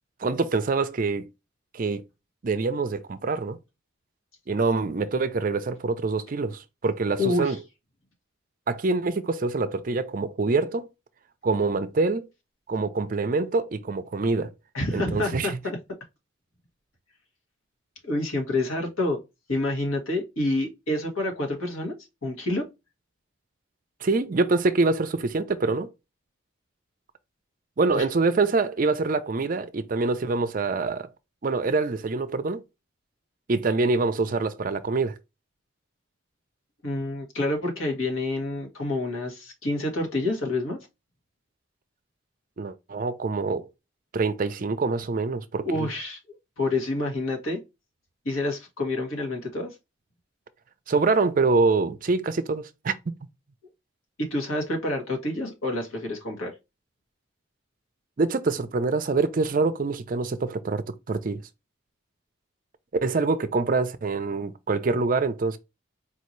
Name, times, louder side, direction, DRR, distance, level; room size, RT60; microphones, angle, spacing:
voice 1, 0.2-1.3 1.7-2.0 2.4-3.6 4.5-7.6 8.7-10.9 11.4-12.3 12.7-14.5 14.9-15.6 24.0-25.9 27.8-31.1 31.4-32.6 33.5-35.2 42.6-43.7 44.1-45.9 50.9-52.9 58.2-61.4 63.0-65.6, right 3 dB, 40° right, 0.4 m, -25 dB
voice 2, 7.2-7.6 14.7-15.8 18.0-19.2 19.5-21.9 22.2-22.6 27.9-28.0 36.8-40.8 45.6-47.6 48.2-49.7 54.2-56.5, left 2 dB, 90° left, 1.6 m, -28 dB
4.4 x 2.7 x 3.1 m
head